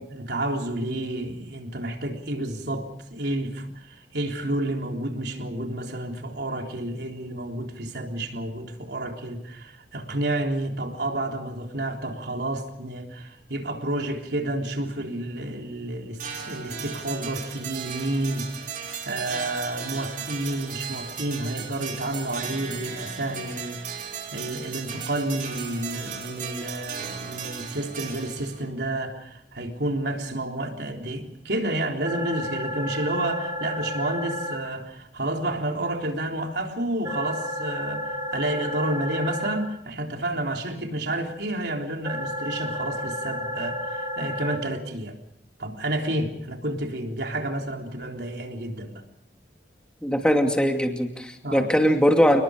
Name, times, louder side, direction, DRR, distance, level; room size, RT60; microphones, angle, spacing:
voice 1, 0.1-16.2 16.4-45.2 45.6-49.0 51.4-51.7, right 1 dB, 70° right, 3.7 m, -30 dB
sound 1, 16.2-28.7, right 7 dB, 50° right, 5.2 m, -36 dB
sound 2, 32.0-34.5 37.0-39.5 42.0-44.5, equal, 20° right, 5.9 m, -31 dB
voice 2, 50.0-52.4, equal, 5° left, 2.5 m, -21 dB
29.5 x 20.5 x 5.1 m
head